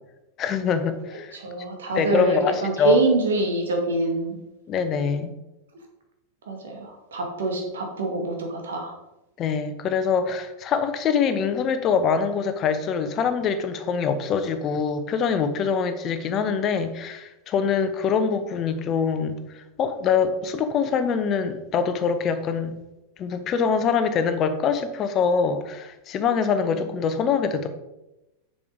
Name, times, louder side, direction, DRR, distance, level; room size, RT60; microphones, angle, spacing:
voice 1, 0.4-1.3 1.9-3.0 4.7-5.3 9.4-22.8 23.2-27.7, left 6 dB, 30° left, 10 dB, 1.0 m, -24 dB
voice 2, 1.3-4.4 6.5-8.9, right 2 dB, 65° right, 3 dB, 2.0 m, -25 dB
7.1 x 6.6 x 4.7 m, 0.95 s
figure-of-eight pair, 90°, 0 cm